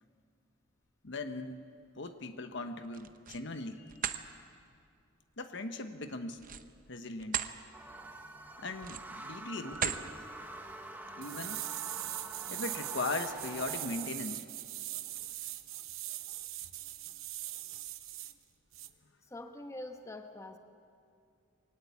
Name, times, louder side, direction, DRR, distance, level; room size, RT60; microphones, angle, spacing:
voice 1, 1.0-1.7 2.0-4.1 5.4-6.4 6.9-7.5 8.6-10.0 11.2-11.6 12.5-14.4, left 2 dB, 60° left, 8 dB, 1.1 m, -39 dB
sound 1, 2.8-3.5 3.9-4.2 6.4-7.5 8.0-8.2 8.7-9.2 9.7-10.1, right 8 dB, 40° right, 0.8 m, -36 dB
sound 2, 7.7-14.1, right 1 dB, 10° right, 1.0 m, -46 dB
sound 3, 11.2-18.3 18.7-18.9, right 14 dB, 80° right, 0.9 m, -41 dB
voice 2, 19.2-20.6, left 1 dB, 15° left, 6 dB, 1.1 m, -44 dB
22.5 x 18.5 x 8.4 m, 2.3 s
head